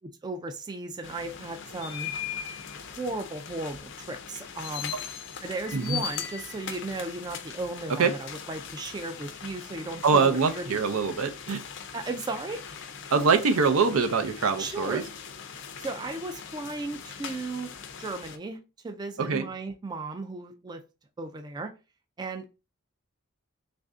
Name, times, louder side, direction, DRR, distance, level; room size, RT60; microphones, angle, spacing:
voice 1, 0.2-2.1 2.8-4.9 5.4-10.9 11.9-12.6 14.6-15.0 15.8-17.7 18.0-18.6 18.8-20.8 21.2-21.7 22.2-22.5, right 2 dB, 20° right, 0.3 m, -35 dB
sound 1, 1.0-18.4, left 7 dB, 60° left, 0.5 m, -40 dB
voice 2, 5.7-6.0 8.0-8.1 10.0-11.6 13.1-15.0 19.2-19.5, right 5 dB, 90° right, 0.5 m, -24 dB
3.2 x 2.5 x 3.5 m
head